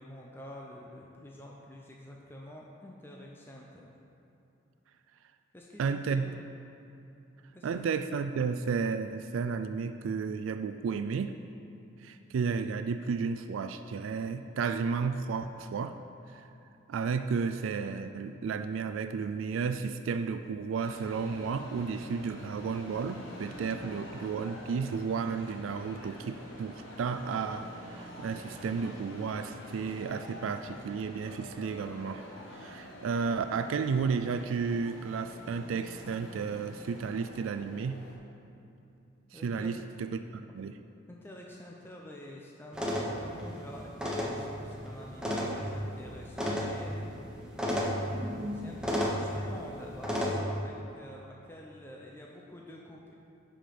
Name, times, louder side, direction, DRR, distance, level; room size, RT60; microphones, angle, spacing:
voice 1, 0.0-3.9 5.5-6.2 7.5-7.8 39.3-39.7 41.1-47.1 48.5-53.1, left 1 dB, 10° left, -2 dB, 0.6 m, -48 dB
voice 2, 5.8-6.3 7.6-11.4 12.0-16.0 16.3-16.5 16.9-32.3 32.5-38.0 39.3-40.8, right 5 dB, 80° right, 9 dB, 0.3 m, -33 dB
sound 1, 20.7-38.1, equal, 90° left, 2.2 m, -48 dB
Cheering, 23.2-34.9, left 1 dB, 65° left, 1.2 m, -53 dB
sound 2, 42.7-50.3, equal, 5° right, 1.0 m, -34 dB
10.5 x 5.1 x 5.8 m, 2.8 s
head